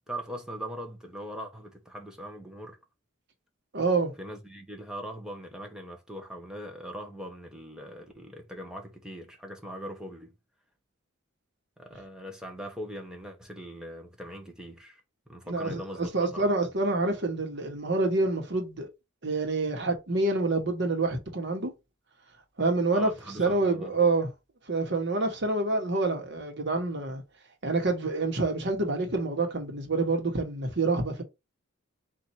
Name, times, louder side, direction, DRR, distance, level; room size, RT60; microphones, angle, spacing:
voice 1, 0.1-2.8 4.2-10.3 11.8-15.0 15.3-16.5 22.9-23.9, equal, 5° right, 0.8 m, -41 dB
voice 2, 3.7-4.1 15.5-18.9 19.2-21.7 22.6-23.1 23.4-24.3 24.7-27.2 27.6-31.2, right 3 dB, 55° right, 1.2 m, -27 dB
4.3 x 2.6 x 4.2 m
head